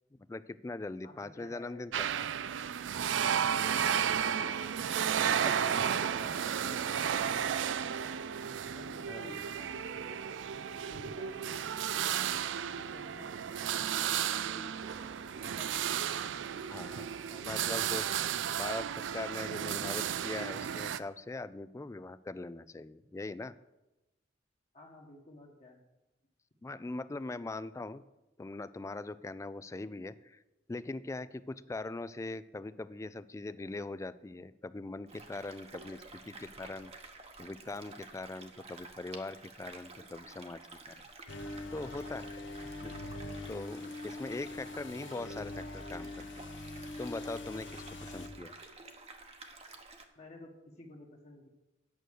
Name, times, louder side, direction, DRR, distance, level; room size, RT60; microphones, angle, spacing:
voice 1, 0.3-2.1 9.1-9.3 16.7-17.1 17.5-18.0 18.5-23.5 26.6-28.0 28.4-30.4 30.7-36.9 37.4-40.6 40.9-41.0 41.7-42.3 42.6-42.9 43.5-46.3 47.0-48.5, left 2 dB, 15° left, 15 dB, 0.3 m, -41 dB
voice 2, 1.0-1.9 4.3-8.3 8.7-10.2 10.5-12.1 12.6-18.0 24.7-25.8 50.1-51.5, left 1 dB, 40° left, -1 dB, 1.4 m, -53 dB
sound 1, 1.9-21.0, right 8 dB, 85° right, 0.4 m, -33 dB
sound 2, 35.1-50.1, right 3 dB, 35° right, 1.0 m, -51 dB
sound 3, 41.3-48.3, left 2 dB, 75° left, 0.8 m, -43 dB
9.1 x 6.2 x 6.5 m, 1.0 s
head